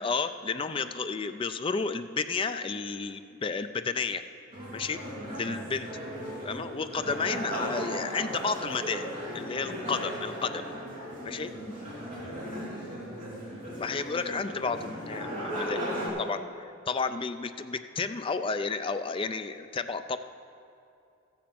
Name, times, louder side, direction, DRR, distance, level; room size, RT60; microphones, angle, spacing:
voice 1, 0.0-4.2 4.7-5.0 5.4-5.9 6.4-9.1 9.3-10.7 11.2-11.5 13.7-15.8 16.2-16.4 16.9-20.2, left 4 dB, 25° left, 10 dB, 0.3 m, -32 dB
sound 1, 4.5-16.1, equal, 40° right, 3.1 m, -37 dB
voice 2, 5.2-5.7 7.1-7.3 11.5-13.4 15.8-16.5, left 1 dB, 10° left, -9 dB, 2.6 m, -47 dB
13.5 x 8.7 x 5.9 m, 2.6 s
head